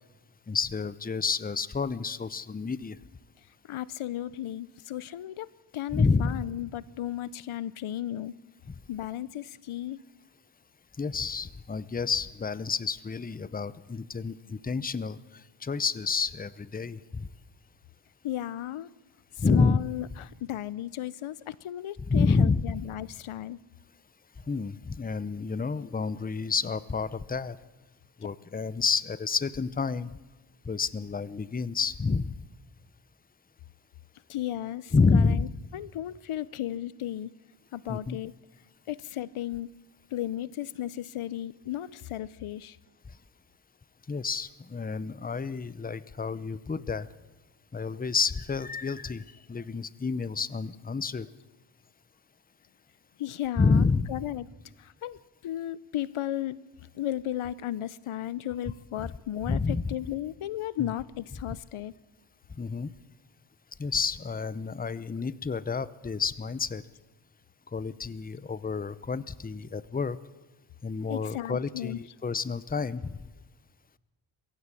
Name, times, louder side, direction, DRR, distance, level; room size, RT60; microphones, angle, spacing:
voice 1, 0.5-3.0 5.9-6.4 11.0-17.3 19.4-19.8 22.1-22.6 24.5-27.6 28.2-30.1 30.7-32.4 34.9-35.4 37.9-38.2 44.1-47.1 47.7-51.3 53.6-54.1 59.0-59.1 59.5-59.9 60.8-60.9 62.6-62.9 63.8-66.8 67.7-70.2 70.8-73.2, left 4 dB, 20° left, 17 dB, 0.7 m, -29 dB
voice 2, 3.7-8.3 8.9-10.0 18.2-18.9 19.4-23.6 34.3-35.5 35.7-37.3 37.7-38.3 38.9-39.7 40.1-42.8 53.2-54.5 54.8-55.2 55.4-56.6 56.9-61.9 71.1-72.0, left 12 dB, 90° left, 20 dB, 0.7 m, -35 dB
23.0 x 16.0 x 8.4 m, 1.1 s
wide cardioid pair, 115°, 48 cm